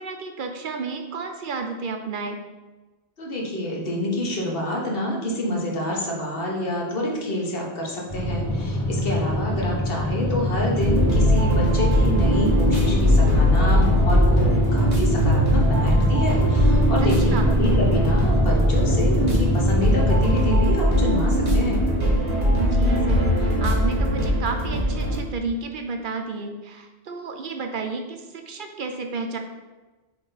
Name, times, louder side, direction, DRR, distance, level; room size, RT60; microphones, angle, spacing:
voice 1, 0.0-2.4 17.0-17.5 22.6-29.4, right 4 dB, 55° right, 5 dB, 0.7 m, -31 dB
voice 2, 3.2-21.8, equal, 60° left, -2 dB, 1.4 m, -27 dB
sound 1, 8.1-20.6, equal, 15° left, 1.1 m, -25 dB
sound 2, 10.8-25.2, equal, 40° right, 1.4 m, -20 dB
7.9 x 3.1 x 3.9 m, 1.2 s
omnidirectional pair, 1.1 m